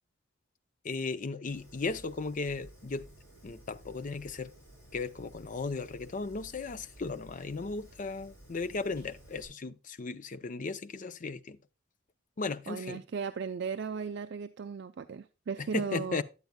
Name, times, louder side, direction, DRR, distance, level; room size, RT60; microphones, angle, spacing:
voice 1, 0.8-3.1 3.4-4.5 4.9-11.6 12.4-13.0 15.6-16.2, left 3 dB, 40° left, 0.5 m, -36 dB
Fire, 1.5-9.5, right 1 dB, 15° left, 3.8 m, -54 dB
voice 2, 12.7-16.2, right 5 dB, 60° right, 0.4 m, -36 dB
10.5 x 8.0 x 2.2 m
head